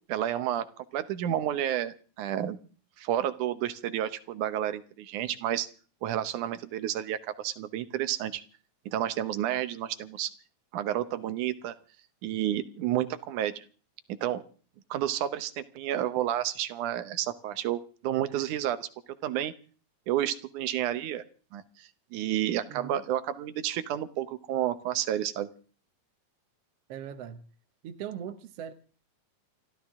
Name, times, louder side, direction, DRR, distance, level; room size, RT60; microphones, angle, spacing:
voice 1, 0.1-0.7 0.9-2.6 3.0-5.7 6.0-8.4 8.9-10.3 10.7-11.7 12.2-13.6 14.1-14.4 14.9-18.9 19.2-19.5 20.1-21.2 21.5-25.5, right 11 dB, 85° right, 2.5 m, -30 dB
voice 2, 22.7-23.0 26.9-27.4 27.8-28.7, right 9 dB, 65° right, 1.7 m, -40 dB
29.0 x 12.5 x 3.7 m
omnidirectional pair, 3.4 m